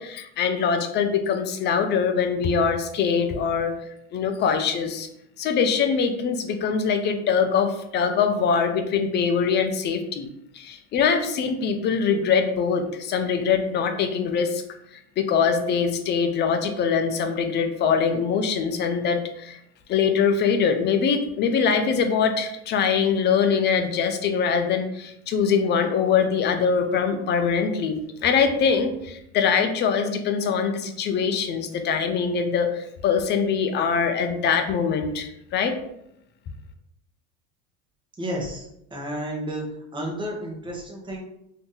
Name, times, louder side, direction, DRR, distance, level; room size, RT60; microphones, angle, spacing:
voice 1, 0.0-3.7 4.1-5.1 5.4-10.3 10.5-14.6 15.2-19.6 19.9-35.8, left 6 dB, 35° left, 7 dB, 0.5 m, -23 dB
voice 2, 38.2-39.6 39.9-41.2, right 1 dB, 15° right, -1 dB, 0.9 m, -31 dB
2.7 x 2.6 x 3.7 m, 0.78 s
supercardioid pair, 115°, 31 cm